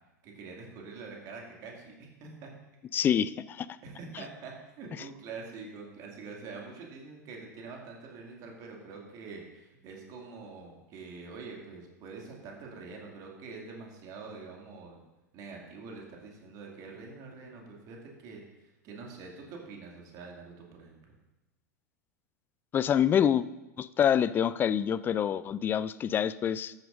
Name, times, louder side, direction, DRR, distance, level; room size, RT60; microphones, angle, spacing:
voice 1, 0.2-2.5 3.8-15.0 15.3-18.4 18.8-21.0, right 4 dB, 40° right, 0 dB, 2.4 m, -45 dB
voice 2, 2.9-3.7 22.7-23.5 23.8-26.7, left 9 dB, 20° left, 16 dB, 0.3 m, -26 dB
13.0 x 9.1 x 2.6 m, 1.0 s
figure-of-eight pair, 90°, 9 cm